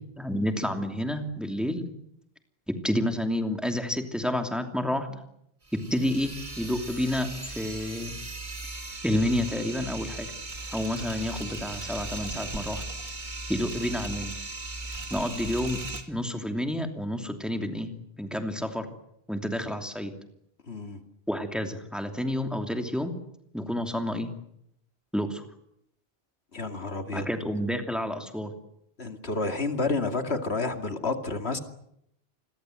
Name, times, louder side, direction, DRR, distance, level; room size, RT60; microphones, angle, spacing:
voice 1, 0.2-1.9 2.7-5.2 5.9-8.1 9.0-10.3 10.7-12.8 13.5-14.3 15.1-15.8 16.1-17.9 18.2-18.9 19.3-20.1 21.3-23.1 23.5-24.3 25.1-25.4 27.1-28.5, left 1 dB, ahead, 5 dB, 2.8 m, -29 dB
sound 1, 5.6-16.0, right 2 dB, 50° right, 3.1 m, -37 dB
voice 2, 20.7-21.0 26.5-27.3 29.0-31.6, left 3 dB, 85° left, 7 dB, 2.7 m, -30 dB
28.5 x 22.5 x 8.0 m, 0.75 s
omnidirectional pair, 1.1 m